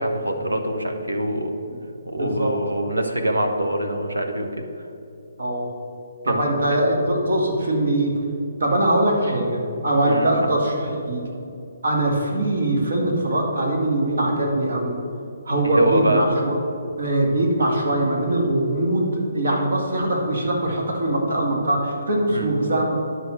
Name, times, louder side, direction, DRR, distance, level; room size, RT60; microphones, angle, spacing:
voice 1, 0.0-1.5 2.1-4.5 6.2-6.8 10.1-10.5 15.6-16.2 22.3-22.5, right 1 dB, 85° right, 4 dB, 1.3 m, -24 dB
voice 2, 2.2-2.5 5.4-5.7 6.3-8.2 8.6-11.3 11.8-15.0 15.5-16.6 17.0-23.0, right 1 dB, 70° right, 0 dB, 2.2 m, -22 dB
10.5 x 6.3 x 6.3 m, 2.7 s
figure-of-eight pair, 135°, 0 cm